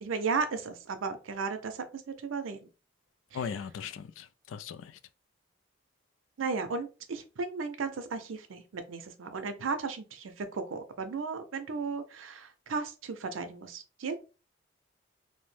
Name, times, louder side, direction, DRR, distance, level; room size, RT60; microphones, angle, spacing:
voice 1, 0.0-2.6 6.4-14.2, right 4 dB, 85° right, 0.5 m, -35 dB
voice 2, 3.3-5.0, left 7 dB, 75° left, 0.3 m, -38 dB
2.7 x 2.1 x 3.2 m
head